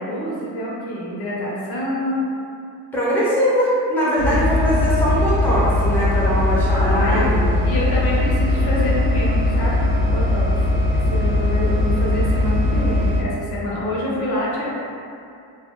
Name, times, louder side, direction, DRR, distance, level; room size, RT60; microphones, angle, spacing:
voice 1, 0.0-2.3 4.1-4.6 6.7-7.2 7.6-10.5 10.9-14.7, left 1 dB, 80° left, -5 dB, 0.8 m, -26 dB
voice 2, 2.9-7.5, equal, 5° left, -8 dB, 0.5 m, -21 dB
sound 1, 4.2-13.2, left 2 dB, 60° right, 0.5 m, -19 dB
2.3 x 2.2 x 2.8 m, 2.5 s
cardioid pair, 135°, 38 cm